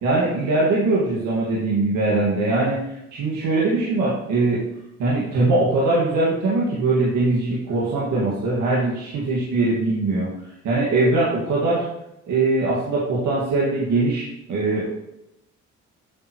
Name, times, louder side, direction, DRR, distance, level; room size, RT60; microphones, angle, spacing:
voice 1, 0.0-2.8 3.1-4.6 5.0-10.3 10.6-11.8 12.3-14.9, right 2 dB, 80° right, -6 dB, 1.9 m, -21 dB
8.6 x 6.3 x 3.1 m, 0.87 s
cardioid pair, 90°, 30 cm